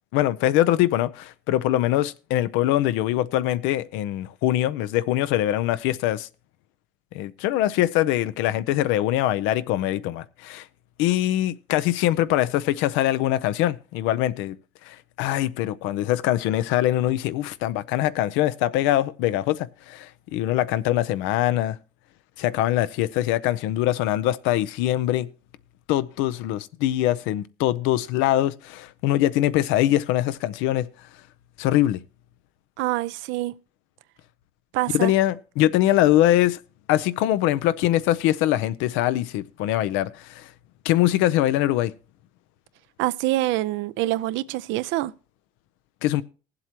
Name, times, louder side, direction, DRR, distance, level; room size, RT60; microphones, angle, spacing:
voice 1, 0.1-6.3 7.1-10.7 11.0-14.6 14.9-21.8 22.4-25.3 25.9-30.9 31.6-32.0 34.9-36.6 36.9-40.5 40.8-41.9 46.0-46.2, left 14 dB, 85° left, 0.6 m, -23 dB
voice 2, 32.8-33.5 34.7-35.1 43.0-45.1, right 17 dB, 75° right, 0.5 m, -25 dB
19.5 x 7.7 x 2.9 m
supercardioid pair, 65°, 20 cm